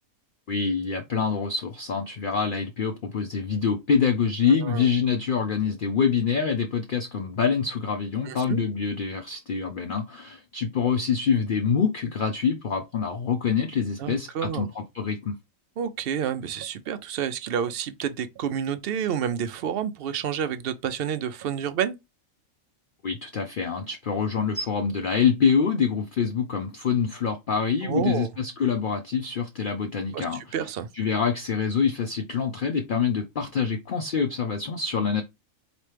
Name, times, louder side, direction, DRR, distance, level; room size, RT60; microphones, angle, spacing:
voice 1, 0.5-15.4 23.0-30.7 30.9-35.2, left 6 dB, 55° left, 0.6 m, -25 dB
voice 2, 8.3-8.6 14.0-14.7 15.8-22.0 27.8-28.3 30.1-30.9, right 8 dB, 65° right, 0.6 m, -29 dB
4.3 x 3.0 x 3.3 m
omnidirectional pair, 1.4 m